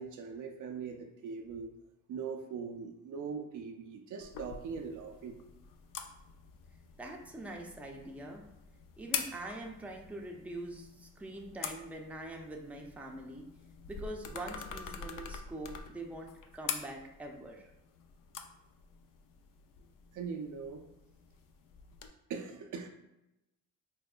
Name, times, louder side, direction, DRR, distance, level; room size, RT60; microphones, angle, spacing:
voice 1, 0.0-1.7 2.1-5.4 20.1-20.8 22.3-22.9, right 5 dB, 55° right, 4 dB, 0.5 m, -41 dB
sound 1, 4.2-22.1, left 7 dB, 60° left, 0.5 m, -45 dB
voice 2, 7.0-8.4 9.0-13.5 13.9-17.7, right 1 dB, 5° right, 1 dB, 0.5 m, -44 dB
4.5 x 2.0 x 2.4 m, 0.92 s
supercardioid pair, 70°, 38 cm